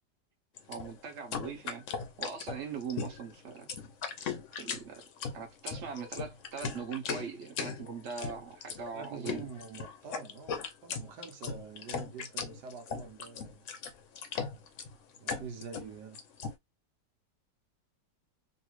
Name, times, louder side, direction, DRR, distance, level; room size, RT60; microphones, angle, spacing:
sound 1, 0.6-16.5, left 5 dB, 60° left, 0.8 m, -38 dB
voice 1, 0.7-1.9 2.2-3.7 4.5-5.0 5.3-9.5, right 6 dB, 45° right, 1.1 m, -41 dB
voice 2, 8.9-13.6 15.2-16.2, right 5 dB, 75° right, 1.3 m, -46 dB
3.2 x 2.6 x 3.0 m
omnidirectional pair, 1.8 m